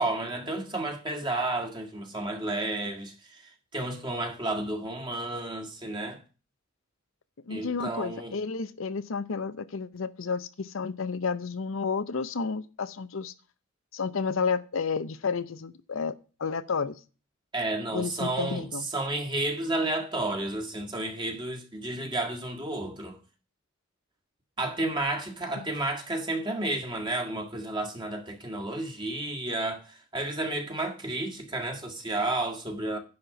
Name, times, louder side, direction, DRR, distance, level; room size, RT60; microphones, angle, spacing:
voice 1, 0.0-6.2 7.5-8.4 17.5-23.2 24.6-33.0, right 2 dB, 20° right, 1.9 m, -31 dB
voice 2, 7.4-13.3 13.9-16.1 16.4-17.0 17.9-18.9 25.6-25.7, left 5 dB, 70° left, 0.6 m, -31 dB
10.5 x 4.3 x 7.8 m
head